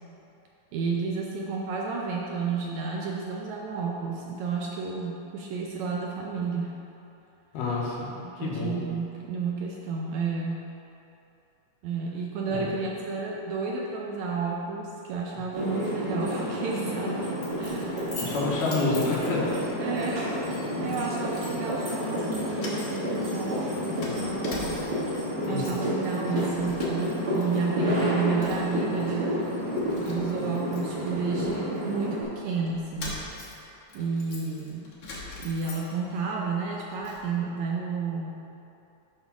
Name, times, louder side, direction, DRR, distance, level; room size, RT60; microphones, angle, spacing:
voice 1, 0.7-6.7 8.2-10.7 11.8-17.3 17.6-18.0 19.8-20.3 20.8-24.7 25.4-29.4 30.1-33.3 33.9-34.9 35.4-38.3, right 5 dB, 80° right, -2 dB, 1.7 m, -31 dB
voice 2, 7.5-8.8 12.5-12.7 18.2-19.5 25.5-25.8, left 3 dB, 90° left, -4 dB, 2.7 m, -29 dB
sound 1, 15.5-32.2, equal, 40° right, 1.9 m, -30 dB
Keys jangling, 17.4-19.7 20.1-20.3 20.9-21.5 21.8-22.3 22.6-25.1 25.4-25.9 26.2-27.4 27.7-28.8 29.3-29.4 29.7-32.1 32.7-36.2 36.6-37.2, left 2 dB, 65° left, 1.0 m, -42 dB
7.8 x 3.5 x 5.9 m, 2.8 s
omnidirectional pair, 3.7 m